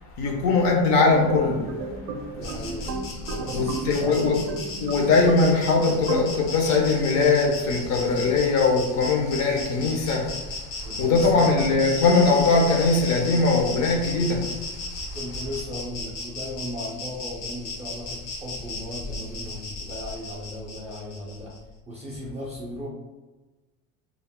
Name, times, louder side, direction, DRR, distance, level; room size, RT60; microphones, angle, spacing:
voice 1, 0.2-1.8 3.5-4.4 4.8-10.4 11.0-14.5, left 3 dB, 40° left, 1 dB, 0.5 m, -21 dB
sound 1, 1.1-6.3, right 3 dB, 65° right, 0.5 m, -33 dB
voice 2, 2.3-2.9 3.3-4.4 4.7-4.8 10.8-11.7 15.1-21.6 21.9-22.9, left 1 dB, 15° right, -5 dB, 0.4 m, -36 dB
Insect, 2.4-21.6, left 2 dB, 75° left, 0.8 m, -36 dB
2.3 x 2.0 x 3.5 m, 1.2 s
supercardioid pair, 125°, 42 cm